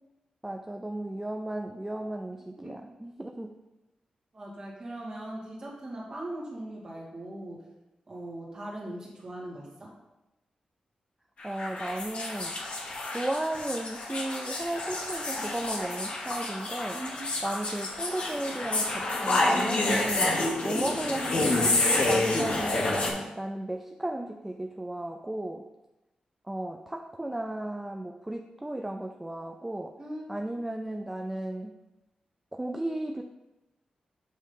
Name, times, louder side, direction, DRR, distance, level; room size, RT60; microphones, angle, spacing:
voice 1, 0.4-3.5 11.4-12.6 13.1-17.0 17.4-20.3 20.6-25.6 26.5-29.9 30.3-31.7 32.5-33.2, right 1 dB, 10° right, 3 dB, 0.3 m, -35 dB
voice 2, 2.5-2.9 4.3-7.6 8.1-9.9 16.9-17.3 30.0-30.4, right 1 dB, 30° right, -4 dB, 1.9 m, -40 dB
sound 1, 11.4-23.1, left 2 dB, 50° left, 1.3 m, -29 dB
8.2 x 3.2 x 5.3 m, 1.0 s
wide cardioid pair, 175°, 3 cm